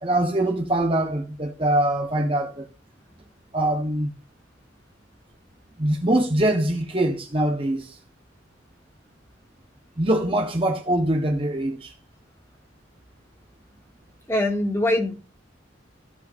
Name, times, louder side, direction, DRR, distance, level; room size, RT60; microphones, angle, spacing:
voice 1, 0.0-2.7 3.5-4.1 5.8-8.0 10.0-11.9, right 1 dB, 30° right, 1.3 m, -23 dB
voice 2, 14.3-15.1, left 1 dB, 15° left, 2.5 m, -22 dB
16.0 x 5.7 x 2.7 m
head